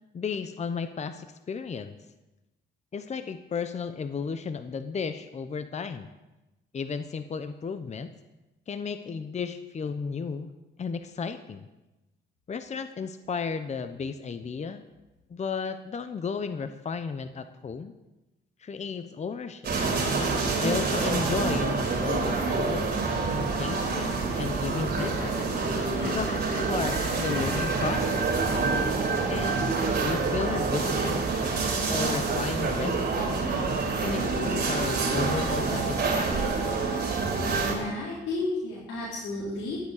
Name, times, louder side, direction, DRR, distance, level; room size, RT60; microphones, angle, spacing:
voice 1, 0.1-2.0 2.9-6.1 6.7-8.1 8.7-10.5 10.8-11.7 12.5-14.8 15.3-17.9 18.6-19.7 20.6-23.0 23.3-25.4 26.0-28.3 29.3-31.2 31.9-33.4 34.0-36.7, left 5 dB, 35° left, 10 dB, 0.8 m, -34 dB
sound 1, 19.6-37.7, right 4 dB, 55° right, 4.4 m, -27 dB
sound 2, 24.7-28.0, left 2 dB, 65° left, 6.6 m, -40 dB
voice 2, 37.6-39.8, left 2 dB, 85° left, -7 dB, 4.0 m, -32 dB
12.5 x 8.6 x 8.3 m, 1.0 s
cardioid pair, 90°, 20 cm